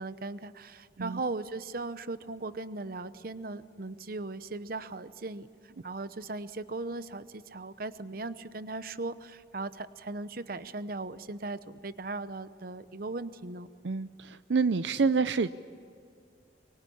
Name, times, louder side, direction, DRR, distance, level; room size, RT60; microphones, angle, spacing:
voice 1, 0.0-13.7, right 3 dB, 55° right, 13 dB, 0.9 m, -38 dB
voice 2, 13.8-15.5, right 4 dB, 80° right, 13 dB, 0.6 m, -27 dB
24.5 x 24.0 x 8.6 m, 2.3 s
head